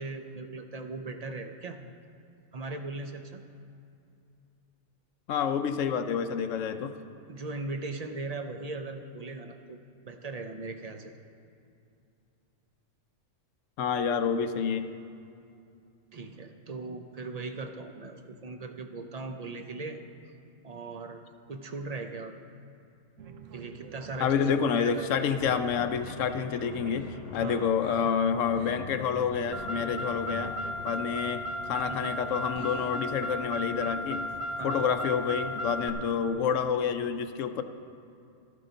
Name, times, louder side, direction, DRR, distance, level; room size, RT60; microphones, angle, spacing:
voice 1, 0.0-1.8 2.5-3.4 7.3-9.8 10.1-11.1 16.1-20.0 20.6-21.2 21.5-22.4 23.5-25.1 27.4-27.8 31.9-32.1 34.5-34.9, right 3 dB, 45° right, 6 dB, 0.6 m, -38 dB
voice 2, 5.3-6.9 13.8-14.9 24.2-30.5 30.8-34.3 34.6-37.6, left 7 dB, 80° left, 9 dB, 1.0 m, -28 dB
sound 1, 23.2-36.8, right 6 dB, 85° right, 1.1 m, -48 dB
sound 2, 25.4-31.1, left 7 dB, 65° left, 0.4 m, -44 dB
Car, 29.5-35.9, equal, 60° right, 0.9 m, -35 dB
13.0 x 12.5 x 3.9 m, 2.5 s
omnidirectional pair, 1.3 m